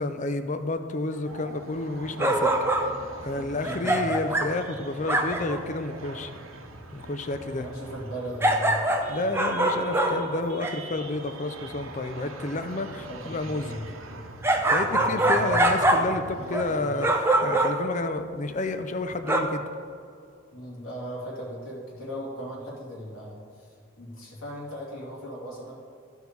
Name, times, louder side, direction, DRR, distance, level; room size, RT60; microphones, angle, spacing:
voice 1, 0.0-2.5 3.2-6.3 6.9-7.7 9.1-13.8 14.7-19.7, left 2 dB, 35° left, 9 dB, 0.5 m, -30 dB
sound 1, 1.2-17.1, right 2 dB, 75° right, 0.9 m, -42 dB
sound 2, 2.2-3.0 3.6-4.6 5.1-5.6 8.4-10.8 14.4-16.2 16.5-16.7 17.0-17.9 19.3-19.4, right 1 dB, 10° right, 0.5 m, -24 dB
voice 2, 3.6-4.2 7.5-9.0 13.1-13.9 14.9-15.6 20.5-25.8, equal, 80° left, -5 dB, 2.7 m, -38 dB
15.0 x 5.5 x 4.5 m, 2.4 s
head